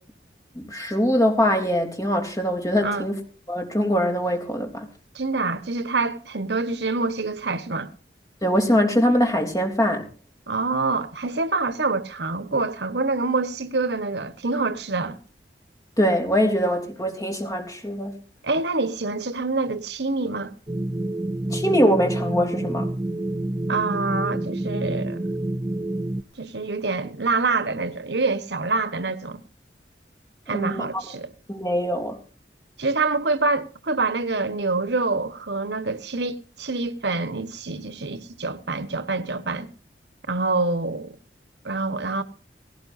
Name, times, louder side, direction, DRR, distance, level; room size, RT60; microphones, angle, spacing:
voice 1, 0.6-3.2 3.5-4.9 8.4-10.1 16.0-18.2 21.5-22.9 30.5-31.0 31.5-32.2, equal, 20° left, 3.3 m, -22 dB
voice 2, 5.1-7.9 10.5-15.2 18.4-20.5 23.7-25.3 26.4-29.4 30.5-31.3 32.8-39.7 40.3-41.2 41.6-42.2, right 3 dB, 75° right, 1.2 m, -26 dB
sound 1, 20.7-26.2, right 1 dB, 20° right, 0.6 m, -28 dB
18.5 x 17.0 x 2.7 m
head